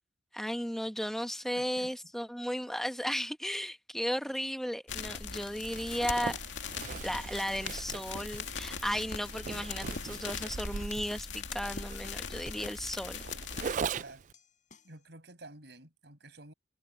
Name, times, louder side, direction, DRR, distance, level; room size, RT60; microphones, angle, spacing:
voice 1, 0.3-6.4 7.0-13.2, equal, ahead, 1.0 m, -35 dB
voice 2, 1.5-2.0 14.0-14.2 14.8-16.5, right 2 dB, 65° right, 6.6 m, -51 dB
sound 1, 4.9-13.7, left 5 dB, 85° left, 2.3 m, -40 dB
Zipper (clothing), 5.6-14.3, right 6 dB, 45° right, 0.3 m, -41 dB
sound 2, 7.2-15.0, left 2 dB, 45° left, 7.8 m, -58 dB
head